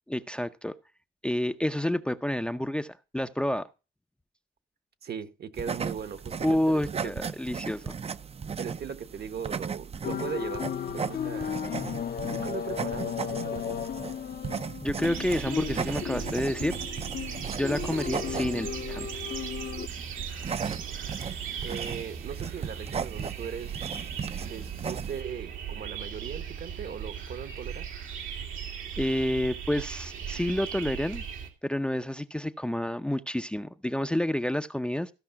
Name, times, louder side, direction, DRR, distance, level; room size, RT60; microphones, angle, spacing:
voice 1, 0.1-0.7 1.2-3.7 6.4-7.9 14.8-16.8 17.5-19.1 29.0-31.2 31.6-35.1, left 1 dB, 5° left, 0.6 m, -29 dB
voice 2, 5.0-7.1 8.6-11.6 12.3-13.9 21.6-23.8 24.4-27.9, right 7 dB, 55° right, 1.2 m, -38 dB
sound 1, 5.6-25.2, right 6 dB, 30° right, 0.6 m, -37 dB
sound 2, 10.0-19.9, left 8 dB, 50° left, 0.8 m, -35 dB
sound 3, 15.0-31.5, right 8 dB, 80° right, 2.4 m, -38 dB
15.0 x 5.5 x 5.8 m
cardioid pair, 90°, 20 cm